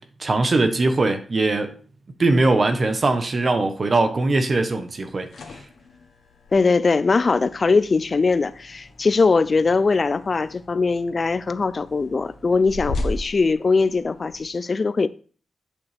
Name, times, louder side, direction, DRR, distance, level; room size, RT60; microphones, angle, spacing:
voice 1, 0.2-1.7 2.2-5.3, right 2 dB, 45° right, 1.2 m, -20 dB
sound 1, 5.2-14.4, left 2 dB, 80° left, 1.5 m, -37 dB
voice 2, 6.5-15.1, left 4 dB, 45° left, 0.4 m, -21 dB
8.3 x 6.8 x 3.4 m
cardioid pair, 85°, 0 cm